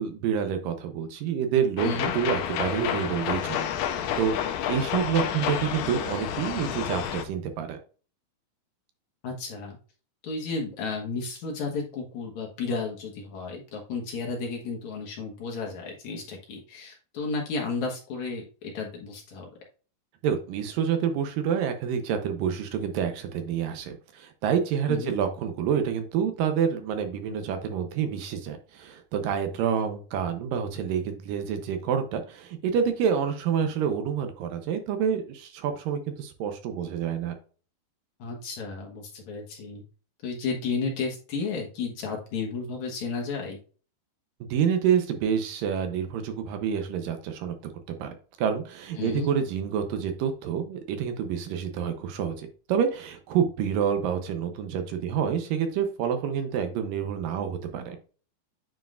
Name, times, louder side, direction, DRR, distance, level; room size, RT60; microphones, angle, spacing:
voice 1, 0.0-3.6 3.8-7.8 20.2-37.3 44.4-47.5 48.0-58.0, right 8 dB, 75° right, 7 dB, 2.3 m, -28 dB
sound 1, 1.8-7.2, left 9 dB, 75° left, 1.9 m, -30 dB
voice 2, 1.8-2.1 9.2-9.8 10.2-19.5 24.9-25.1 38.2-39.8 40.2-43.6 49.0-49.3, left 4 dB, 60° left, -1 dB, 2.4 m, -33 dB
9.2 x 4.7 x 2.4 m, 0.37 s
omnidirectional pair, 4.3 m